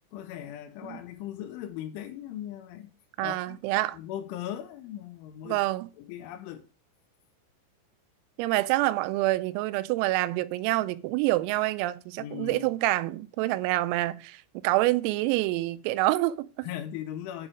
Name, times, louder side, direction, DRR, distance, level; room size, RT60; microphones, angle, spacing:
voice 1, 0.1-2.9 3.2-3.6 3.9-5.6 6.0-6.7 12.2-12.7 16.6-17.5, left 11 dB, 80° left, 3.1 m, -38 dB
voice 2, 3.2-4.0 5.5-5.9 8.4-16.7, right 18 dB, 90° right, 3.3 m, -27 dB
9.7 x 6.5 x 5.0 m
omnidirectional pair, 5.9 m